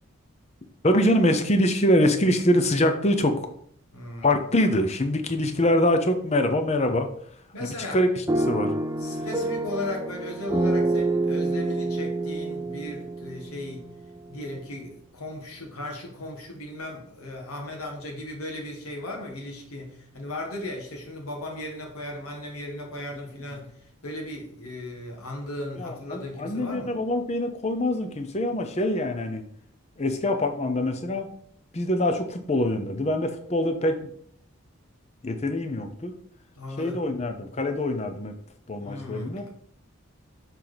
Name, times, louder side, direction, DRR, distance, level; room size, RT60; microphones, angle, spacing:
voice 1, 0.8-3.4 4.2-7.1 7.6-8.1 8.4-8.7 25.8-29.4 30.0-31.3 31.7-34.1 35.2-36.1 36.8-38.3 38.7-39.5, left 1 dB, 30° left, 7 dB, 0.7 m, -24 dB
voice 2, 3.9-4.4 7.5-8.0 9.0-13.9 14.3-27.0 36.6-37.0 38.8-39.5, left 1 dB, 90° left, 0 dB, 1.9 m, -36 dB
sound 1, 8.3-14.3, right 2 dB, 15° right, 0.4 m, -27 dB
6.9 x 4.5 x 4.0 m, 0.65 s
head